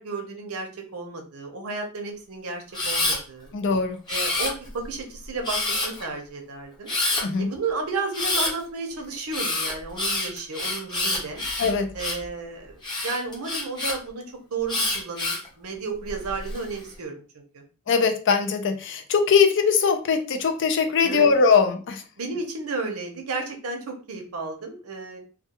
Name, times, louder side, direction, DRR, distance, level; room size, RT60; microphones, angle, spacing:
voice 1, 0.0-3.5 4.1-6.9 7.4-11.5 11.9-14.2 14.5-17.2 17.5-17.6 21.0-21.3 22.2-25.2, right 3 dB, 70° right, 3 dB, 0.7 m, -33 dB
Camera, 2.7-3.2 4.1-4.8 5.4-6.0 6.9-7.2 8.1-8.5 9.3-12.3 12.8-13.9 14.7-15.5 16.1-16.6, left 2 dB, 20° left, 0.9 m, -27 dB
voice 2, 3.5-4.0 7.2-7.5 11.6-11.9 17.9-22.0, left 5 dB, 55° left, 7 dB, 0.5 m, -21 dB
2.3 x 2.3 x 2.9 m, 0.37 s
head